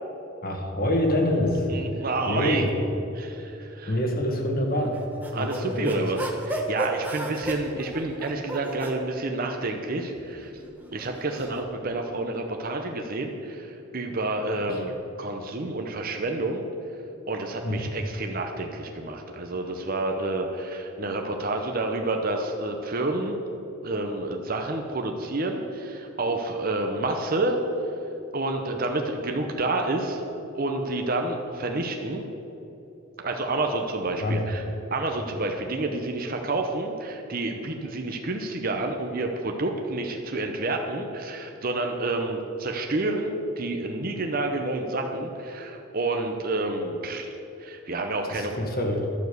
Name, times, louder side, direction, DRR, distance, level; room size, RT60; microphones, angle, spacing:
voice 1, 0.4-2.7 3.9-5.0 5.3-6.1 14.7-14.8 17.6-17.8 34.2-34.4 48.2-49.1, left 1 dB, 45° left, 2 dB, 1.7 m, -26 dB
voice 2, 1.7-2.6 3.2-3.9 5.3-10.5 10.9-16.7 17.3-23.4 23.8-27.6 28.3-30.3 30.5-32.2 33.2-34.6 34.9-47.3 47.6-48.5, right 2 dB, 45° right, 3 dB, 0.8 m, -29 dB
sound 1, 4.9-9.0 9.9-11.6, right 2 dB, 10° right, 1.1 m, -34 dB
11.5 x 7.1 x 8.0 m, 3.0 s
head